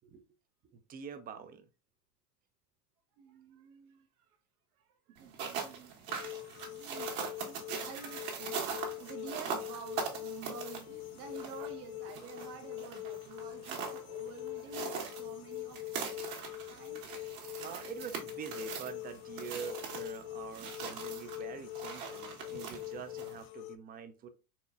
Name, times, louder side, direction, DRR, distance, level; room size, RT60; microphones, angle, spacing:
voice 1, 0.7-1.7 17.6-24.3, right 7 dB, 20° right, 0.4 m, -45 dB
voice 2, 3.2-4.4 4.8-6.3 6.6-15.8 16.7-17.0 20.5-21.0, right 6 dB, 80° right, 1.1 m, -50 dB
sound 1, 5.2-23.4, right 6 dB, 60° right, 1.5 m, -42 dB
sound 2, 6.1-23.8, left 17 dB, 60° left, 0.5 m, -44 dB
4.4 x 3.0 x 2.3 m
hypercardioid pair, 100°, 44 cm